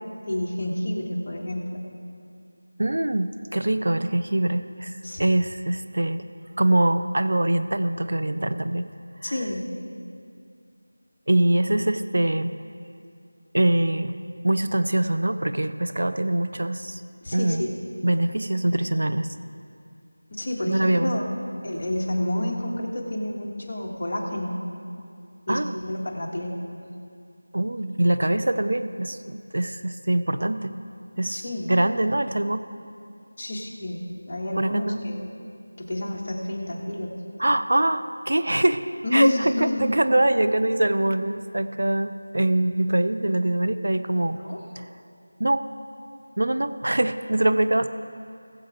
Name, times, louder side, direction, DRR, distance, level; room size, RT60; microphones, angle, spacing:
voice 1, 0.3-1.8 5.0-5.2 9.2-9.7 17.2-17.7 20.3-21.3 21.6-24.6 25.5-26.6 31.3-31.7 33.4-35.3 35.8-37.2 39.0-39.9 44.4-44.6, left 1 dB, 30° left, -3 dB, 1.6 m, -29 dB
voice 2, 2.8-6.3 6.6-8.9 9.2-9.4 11.3-12.5 13.5-14.2 14.4-17.0 17.3-17.6 18.0-19.3 20.6-21.2 25.5-25.8 27.5-30.7 31.2-31.4 31.7-32.6 34.6-35.0 37.4-38.8 39.1-44.4 44.8-44.9 45.4-45.6 46.4-47.9, right 1 dB, 65° right, 10 dB, 0.7 m, -23 dB
20.0 x 7.5 x 3.7 m, 2.4 s
figure-of-eight pair, 175°, 0 cm